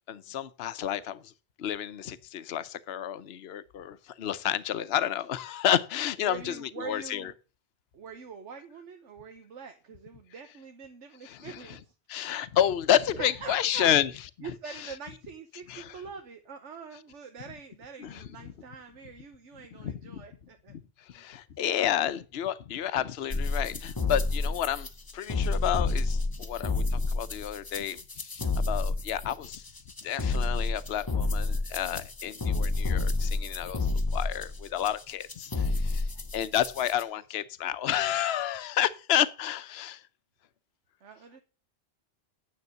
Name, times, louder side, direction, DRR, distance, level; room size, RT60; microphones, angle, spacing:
voice 1, 0.1-1.3 1.6-7.3 11.2-11.8 12.1-14.1 14.4-14.9 15.7-16.0 18.0-18.5 19.8-20.2 20.7-24.9 25.1-29.7 30.0-40.1, left 10 dB, 65° left, 1.0 m, -30 dB
voice 2, 6.2-7.3 7.9-11.9 13.2-13.9 14.4-20.7 21.1-22.2 41.0-41.4, right 6 dB, 80° right, 1.4 m, -44 dB
sound 1, 23.3-37.0, left 3 dB, 20° left, 0.7 m, -29 dB
9.7 x 7.1 x 6.5 m
omnidirectional pair, 1.2 m